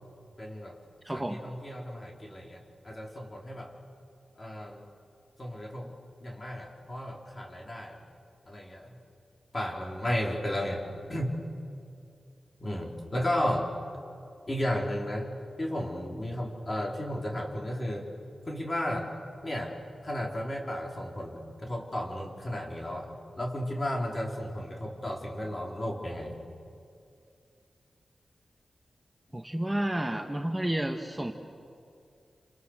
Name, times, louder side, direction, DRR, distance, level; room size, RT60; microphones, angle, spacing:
voice 1, 0.4-0.8 1.1-3.7 4.4-4.8 5.4-5.9 6.2-8.0 8.5-9.0 9.5-10.8 11.1-11.4 12.6-13.7 14.5-15.3 15.6-18.1 18.5-19.1 19.4-23.1 23.3-26.4, left 1 dB, 35° left, 0 dB, 4.7 m, -33 dB
voice 2, 1.0-1.4 29.3-31.3, right 1 dB, 15° right, 3 dB, 1.6 m, -30 dB
29.5 x 27.0 x 6.7 m, 2.5 s
cardioid pair, 65°, 0 cm